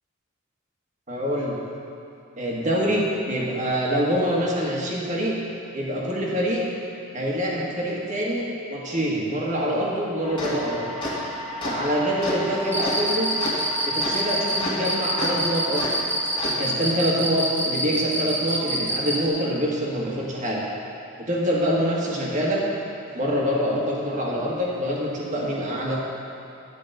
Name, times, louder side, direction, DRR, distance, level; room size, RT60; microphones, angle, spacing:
voice 1, 1.1-1.6 2.4-5.3 5.7-6.6 7.1-10.8 11.6-13.3 13.9-15.9 16.4-20.6 21.3-22.6 23.1-26.0, equal, 35° right, -4 dB, 1.7 m, -25 dB
sound 1, 10.2-16.5, left 1 dB, 20° left, 2.0 m, -31 dB
Cricket, 12.6-19.2, right 1 dB, 10° right, 0.7 m, -26 dB
10.5 x 5.2 x 7.9 m, 2.7 s
head